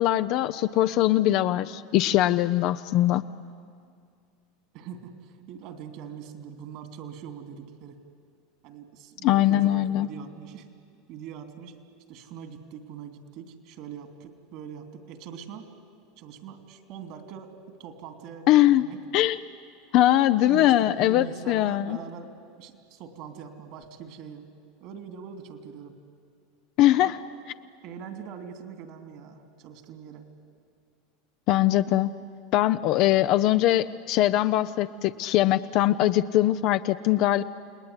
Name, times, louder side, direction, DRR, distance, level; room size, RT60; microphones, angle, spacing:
voice 1, 0.0-3.2 9.2-10.1 18.5-18.9 19.1-19.4 19.9-22.0 26.8-27.2 31.5-32.1 32.5-37.4, left 14 dB, 55° left, 10 dB, 0.6 m, -21 dB
voice 2, 4.7-8.0 8.6-10.7 11.1-11.8 12.1-15.7 16.2-19.0 20.4-22.3 22.6-24.5 24.8-26.0 26.9-27.2 27.8-30.3, right 7 dB, 60° right, 7 dB, 3.0 m, -42 dB
30.0 x 19.5 x 9.8 m, 2.2 s
supercardioid pair, 120°, 0 cm